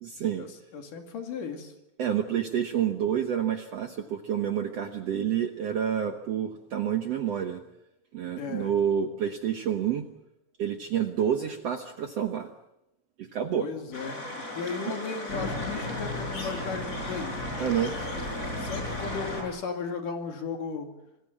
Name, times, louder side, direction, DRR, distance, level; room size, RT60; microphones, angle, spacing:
voice 1, 0.0-0.5 2.0-7.6 8.1-10.1 10.6-12.5 13.2-13.7 17.6-17.9, right 9 dB, 65° right, 7 dB, 1.6 m, -28 dB
voice 2, 0.7-1.7 8.4-8.7 13.6-14.2 14.6-17.4 18.6-20.9, left 5 dB, 65° left, 5 dB, 3.9 m, -35 dB
sound 1, 13.9-19.4, left 1 dB, 20° left, 6.4 m, -34 dB
27.0 x 20.0 x 7.5 m, 0.86 s
omnidirectional pair, 4.1 m